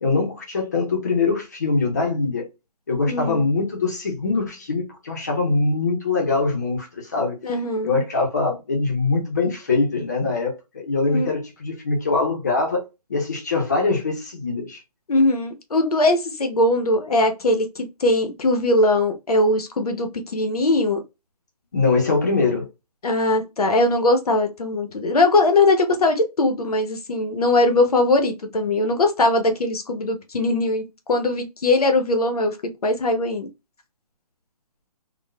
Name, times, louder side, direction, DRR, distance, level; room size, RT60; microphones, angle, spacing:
voice 1, 0.0-2.4 2.9-7.4 7.8-12.8 13.1-14.8 21.7-22.7, left 3 dB, 25° left, 0.8 m, -23 dB
voice 2, 3.0-3.5 7.4-8.0 11.1-11.3 15.1-21.0 23.0-30.8 31.1-32.6 32.8-33.5, left 2 dB, 65° left, 0.9 m, -20 dB
4.0 x 2.3 x 2.2 m
hypercardioid pair, 175°, 21 cm